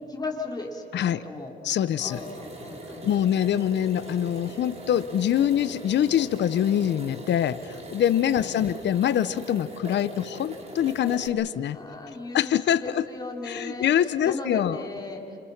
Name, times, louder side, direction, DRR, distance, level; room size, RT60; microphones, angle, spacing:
voice 1, 0.1-1.5 2.0-3.1 8.3-8.6 11.7-15.4, left 3 dB, 20° left, 0 dB, 4.4 m, -37 dB
voice 2, 1.6-2.2 3.0-11.8 12.3-13.0 13.4-14.8, left 10 dB, 60° left, 14 dB, 0.8 m, -24 dB
sound 1, 2.0-11.3, right 2 dB, 30° right, 4.6 m, -41 dB
28.0 x 27.0 x 5.9 m, 2.8 s
cardioid pair, 90°, 20 cm